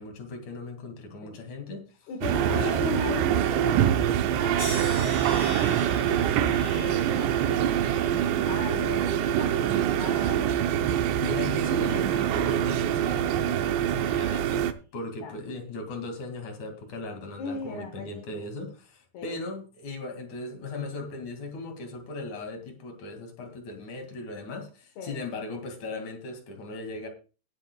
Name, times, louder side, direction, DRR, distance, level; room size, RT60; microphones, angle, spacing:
voice 1, 0.0-2.9 11.2-27.1, left 2 dB, 45° left, 3.2 m, -38 dB
voice 2, 2.1-5.2 5.6-10.7 15.2-15.3 17.4-18.5 19.1-19.4 25.0-25.2, left 5 dB, 65° left, 3.0 m, -38 dB
sound 1, 2.2-14.7, right 10 dB, 75° right, 2.9 m, -25 dB
sound 2, 4.6-9.7 10.2-10.9 11.6-11.9, left 1 dB, 15° left, 4.1 m, -42 dB
19.0 x 9.4 x 2.3 m
omnidirectional pair, 5.4 m